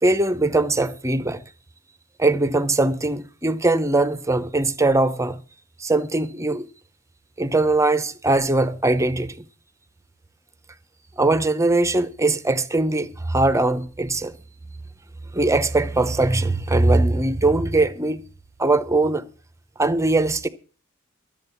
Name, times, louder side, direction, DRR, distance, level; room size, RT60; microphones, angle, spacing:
voice 1, 0.0-1.4 2.2-5.4 5.8-6.7 7.4-9.4 11.2-14.3 15.3-18.2 18.6-19.2 19.8-20.5, right 2 dB, 15° right, 0.7 m, -21 dB
13.0 x 7.7 x 7.0 m
head